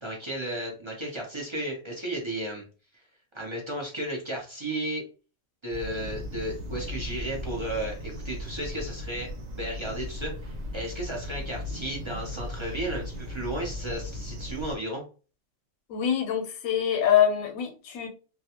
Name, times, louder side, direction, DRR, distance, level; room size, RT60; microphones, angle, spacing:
voice 1, 0.0-2.6 2.9-3.0 3.3-5.0 5.6-9.3 9.6-15.0, right 1 dB, 40° right, -1 dB, 0.4 m, -34 dB
sound 1, 5.7-14.8, left 1 dB, 60° right, 1.0 m, -37 dB
voice 2, 15.9-18.1, left 9 dB, 85° left, 5 dB, 1.0 m, -24 dB
2.3 x 2.2 x 2.8 m, 0.36 s
omnidirectional pair, 1.4 m